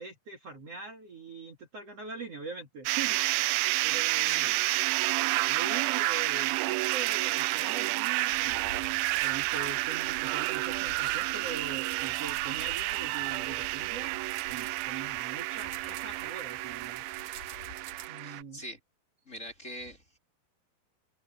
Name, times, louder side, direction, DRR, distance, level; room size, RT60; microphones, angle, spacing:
voice 1, 0.0-4.5 5.4-8.7 9.2-14.2 14.5-17.0 18.1-18.6, right 5 dB, 45° right, 2.6 m, -42 dB
sound 1, 2.9-18.4, right 21 dB, 85° right, 2.2 m, -30 dB
voice 2, 4.2-4.6 18.2-18.8 19.3-20.2, equal, 20° left, 3.1 m, -43 dB
sound 2, 6.8-13.5 14.2-14.9 15.2-18.1, right 9 dB, 60° right, 1.6 m, -49 dB
sound 3, 8.3-18.1, left 4 dB, 70° left, 7.4 m, -52 dB
open air
omnidirectional pair, 4.6 m